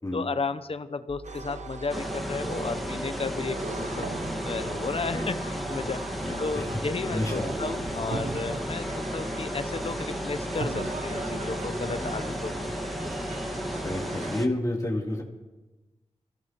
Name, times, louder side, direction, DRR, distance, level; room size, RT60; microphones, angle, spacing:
voice 1, 0.1-4.1 4.4-12.5, left 4 dB, 50° left, 12 dB, 0.9 m, -33 dB
sound 1, 1.1-14.1, right 2 dB, 20° right, 2.9 m, -44 dB
sound 2, 1.2-14.4, right 4 dB, 70° right, 1.0 m, -39 dB
sound 3, 1.9-14.5, equal, ahead, 1.8 m, -34 dB
voice 2, 6.2-6.8 7.1-7.5 12.0-12.4 13.8-15.2, left 1 dB, 25° left, -3 dB, 3.3 m, -31 dB
23.5 x 16.5 x 3.1 m, 1.1 s
cardioid pair, 55°, 12 cm